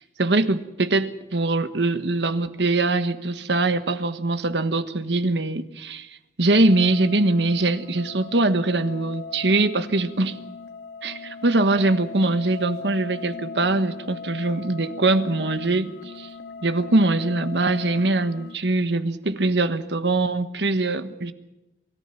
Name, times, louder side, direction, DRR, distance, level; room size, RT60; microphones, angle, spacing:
voice 1, 0.2-6.1 6.4-10.4 11.0-16.3 16.6-21.3, right 2 dB, 75° right, 1.4 m, -22 dB
sound 1, 6.5-18.6, left 4 dB, 75° left, 2.0 m, -39 dB
24.0 x 14.0 x 9.0 m
head